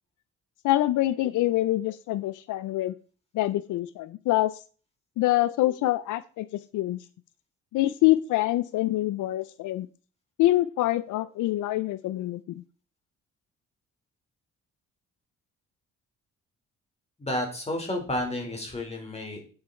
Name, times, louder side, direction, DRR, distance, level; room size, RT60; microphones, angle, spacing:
voice 1, 0.6-2.9 3.3-4.6 5.2-7.0 7.7-9.9 10.4-12.4, left 16 dB, 80° left, 16 dB, 0.6 m, -25 dB
voice 2, 17.2-19.5, left 1 dB, 20° left, 1 dB, 4.7 m, -31 dB
8.9 x 8.9 x 4.4 m, 0.38 s
cardioid pair, 90°, 30 cm